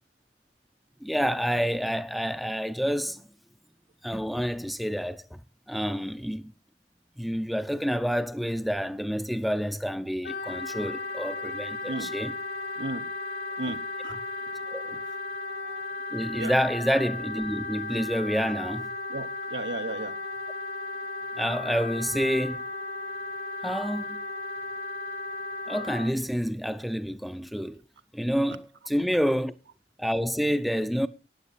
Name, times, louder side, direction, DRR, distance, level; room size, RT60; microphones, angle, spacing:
voice 1, 1.0-3.2 4.0-5.2 5.7-6.4 7.2-12.3 14.7-15.0 16.1-18.9 21.4-22.6 23.6-24.2 25.7-27.8 28.1-29.5 30.0-31.1, equal, ahead, 0.6 m, -28 dB
Wind instrument woodwind instrument, 10.2-26.1, left 3 dB, 55° left, 1.2 m, -35 dB
voice 2, 13.6-14.2 16.4-16.6 19.1-20.2, right 2 dB, 85° right, 1.2 m, -34 dB
14.0 x 9.6 x 4.2 m
head